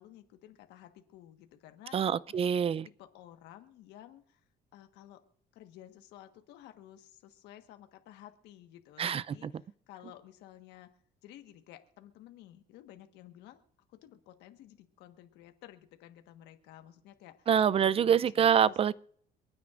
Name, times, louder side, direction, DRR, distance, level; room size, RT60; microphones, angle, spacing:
voice 1, 0.0-2.1 2.8-4.4 4.7-5.2 5.5-10.9 11.2-13.6 13.9-18.8, left 12 dB, 90° left, 1.4 m, -54 dB
voice 2, 1.9-2.9 9.0-9.5 17.5-18.9, right 8 dB, 35° right, 0.4 m, -26 dB
27.5 x 9.4 x 2.5 m
cardioid pair, 110°, 17 cm